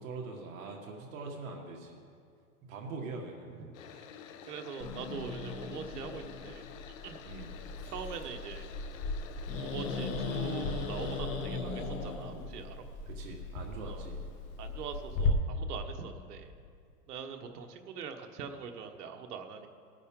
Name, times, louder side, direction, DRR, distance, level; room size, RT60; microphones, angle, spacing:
voice 1, 0.0-2.0 2.7-3.5 7.2-7.5 13.1-14.2, right 3 dB, 60° right, 1 dB, 1.9 m, -42 dB
voice 2, 3.6-4.1 4.5-6.6 7.0-7.2 7.9-8.6 9.6-12.8 13.9-14.0 14.6-16.5 17.1-19.7, right 6 dB, 75° right, 5 dB, 1.4 m, -42 dB
sound 1, 3.7-11.2, left 8 dB, 55° left, 1.0 m, -50 dB
Growling, 4.8-15.3, left 4 dB, 15° left, 0.5 m, -37 dB
19.0 x 9.7 x 3.8 m, 2.3 s
supercardioid pair, 155°, 47 cm